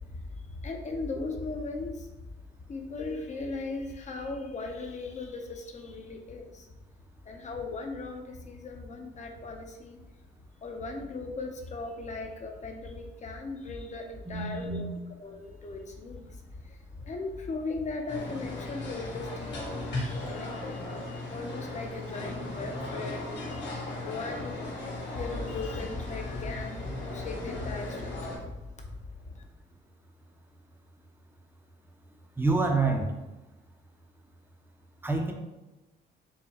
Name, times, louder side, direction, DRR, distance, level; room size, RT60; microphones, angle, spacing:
voice 1, 0.0-2.3 2.7-6.7 7.2-10.3 10.6-14.9 15.2-29.4, left 3 dB, 35° left, 3 dB, 0.7 m, -38 dB
voice 2, 14.3-14.9 32.4-33.1 35.0-35.3, right 3 dB, 10° right, 3 dB, 0.6 m, -27 dB
sound 1, 18.1-28.4, left 2 dB, 65° left, 1.4 m, -37 dB
4.7 x 2.3 x 2.9 m, 1.1 s
cardioid pair, 90°, 20 cm